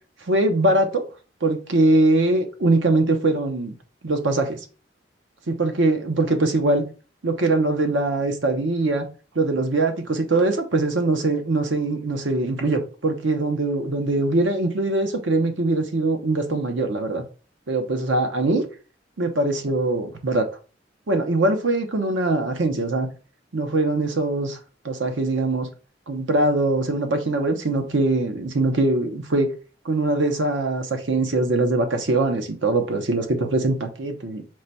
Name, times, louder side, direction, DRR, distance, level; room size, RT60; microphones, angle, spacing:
voice 1, 0.3-1.0 1.4-3.7 4.0-4.6 5.5-6.8 7.2-9.1 9.3-17.2 17.7-18.6 19.2-20.5 21.1-23.1 23.5-24.6 24.8-25.7 26.1-29.5 29.8-34.4, right 2 dB, 85° right, 0.8 m, -22 dB
4.7 x 2.2 x 4.0 m
head